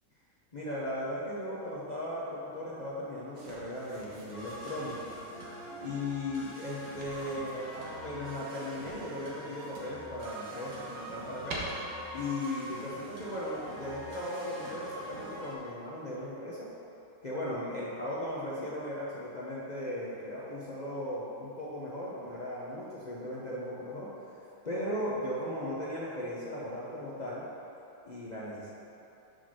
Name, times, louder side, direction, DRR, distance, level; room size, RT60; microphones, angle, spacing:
voice 1, 0.5-5.1 5.8-11.6 12.1-16.7 17.2-24.1 24.6-27.4 28.0-28.7, left 1 dB, 60° left, -8 dB, 0.4 m, -37 dB
sound 1, 3.3-5.3 6.7-8.1 8.8-10.1 10.5-11.6, right 4 dB, 85° right, 1.8 m, -48 dB
sound 2, 4.3-15.6, equal, 40° right, 1.1 m, -43 dB
6.7 x 4.0 x 6.2 m, 2.9 s
omnidirectional pair, 2.2 m